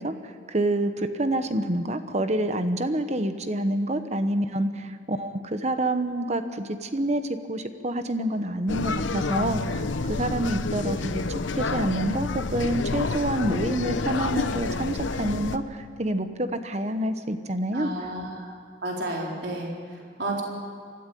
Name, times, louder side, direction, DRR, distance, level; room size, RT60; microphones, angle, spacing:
voice 1, 0.0-17.9, right 1 dB, 35° right, 9 dB, 1.0 m, -27 dB
sound 1, 8.7-15.6, left 3 dB, 90° left, 0.9 m, -29 dB
voice 2, 17.7-18.5 18.8-19.7 20.2-20.4, right 1 dB, 65° right, -2 dB, 4.2 m, -31 dB
25.0 x 13.5 x 9.2 m, 2.2 s
head